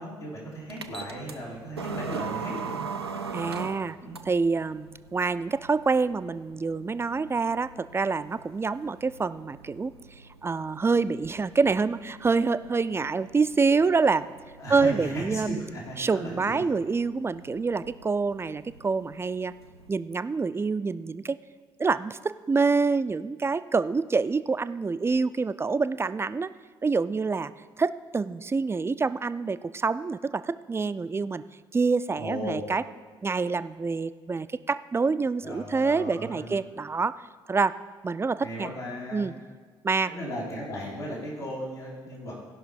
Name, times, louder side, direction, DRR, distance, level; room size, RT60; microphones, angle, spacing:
voice 1, 0.0-2.9 4.0-4.1 14.6-16.6 32.1-32.6 35.4-36.6 38.4-39.3 40.1-42.4, equal, 80° left, -8 dB, 3.0 m, -36 dB
sound 1, 0.7-19.9, right 5 dB, 90° right, 0.4 m, -42 dB
voice 2, 3.3-4.0 4.3-9.9 10.4-14.3 14.7-15.6 16.0-19.5 19.9-21.4 21.8-26.5 26.8-27.5 27.8-31.4 31.7-32.8 33.2-37.1 37.5-37.7 38.0-38.7 39.1-39.3 39.8-40.1, right 4 dB, 20° right, 13 dB, 0.4 m, -26 dB
15.0 x 5.7 x 5.3 m, 1.5 s
figure-of-eight pair, 45°, 13 cm